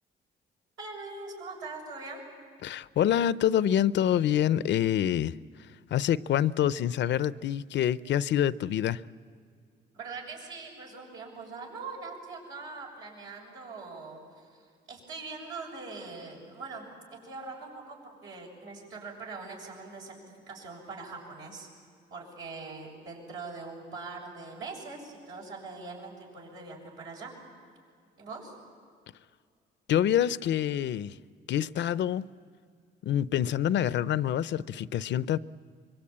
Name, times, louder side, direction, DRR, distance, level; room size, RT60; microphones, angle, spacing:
voice 1, 0.8-2.2 9.9-20.2 20.5-21.7 22.1-27.3 28.2-28.6, right 3 dB, 90° right, 7.2 m, -42 dB
voice 2, 2.6-5.3 5.9-9.0 29.9-31.2 31.5-32.2 33.0-35.4, left 10 dB, 65° left, 0.5 m, -26 dB
25.0 x 22.5 x 8.7 m
cardioid pair, 90°, 20 cm